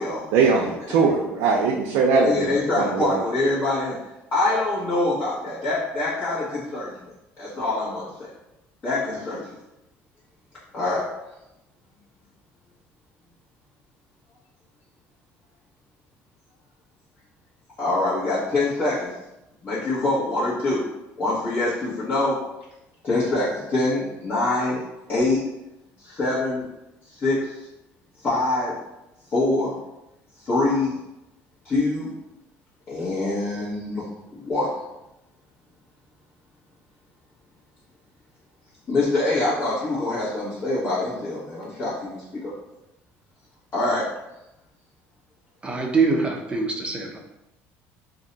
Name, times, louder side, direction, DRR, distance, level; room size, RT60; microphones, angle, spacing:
voice 1, 0.3-3.2, right 4 dB, 80° right, -1 dB, 0.4 m, -21 dB
voice 2, 2.1-4.0 4.3-6.9 7.4-8.3 8.8-9.6 10.7-11.1 17.8-19.1 19.6-20.8 21.2-22.4 23.0-24.8 25.1-25.4 26.0-26.7 27.1-27.6 28.2-28.8 29.3-29.7 30.4-31.0 31.6-32.1 32.9-34.1 34.3-34.7 38.9-42.5 43.7-44.1, left 2 dB, 40° left, -11 dB, 1.0 m, -24 dB
voice 3, 45.6-47.2, right 4 dB, 20° right, 1 dB, 0.6 m, -23 dB
2.6 x 2.1 x 3.8 m, 0.93 s
cardioid pair, 110°, 5 cm